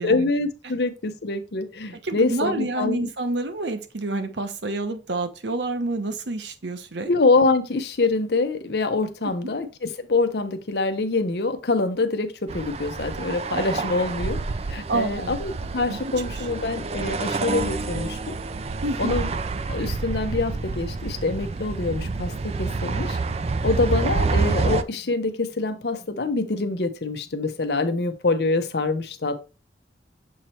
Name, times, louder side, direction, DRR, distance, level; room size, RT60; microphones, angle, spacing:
voice 1, 0.0-3.1 7.0-14.4 14.7-18.4 19.0-19.3 19.7-23.2 23.6-29.5, left 3 dB, 65° left, 0.8 m, -25 dB
voice 2, 2.0-7.1 9.4-9.5 14.9-15.4 15.9-16.0 16.3-16.4 18.8-19.1, right 2 dB, 80° right, 0.9 m, -28 dB
sound 1, 12.5-24.8, right 3 dB, 35° right, 0.4 m, -28 dB
7.3 x 3.1 x 4.3 m
head